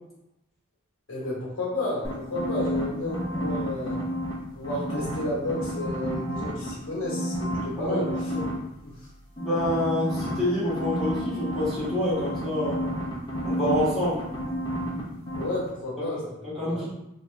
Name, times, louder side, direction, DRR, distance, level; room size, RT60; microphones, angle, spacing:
voice 1, 1.1-4.0 4.6-8.1 8.8-8.9 15.3-16.2 16.6-16.9, left 1 dB, 65° left, -5 dB, 1.2 m, -31 dB
sound 1, 2.0-4.3 4.6-6.7 7.0-8.5 9.4-15.0 15.3-15.4, equal, 20° left, 0.8 m, -30 dB
voice 2, 9.4-12.8 13.4-14.2 16.6-16.9, left 1 dB, ahead, -13 dB, 1.3 m, -27 dB
2.8 x 2.5 x 3.3 m, 0.88 s
head